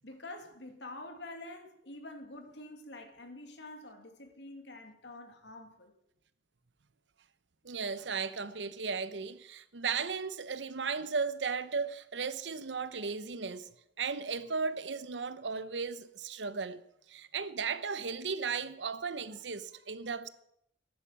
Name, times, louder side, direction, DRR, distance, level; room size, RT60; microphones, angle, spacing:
voice 1, 0.0-5.9, left 2 dB, 80° left, 2.5 m, -47 dB
voice 2, 7.6-13.7 14.0-16.8 17.1-20.3, right 5 dB, 85° right, 0.9 m, -35 dB
14.0 x 10.5 x 7.4 m
head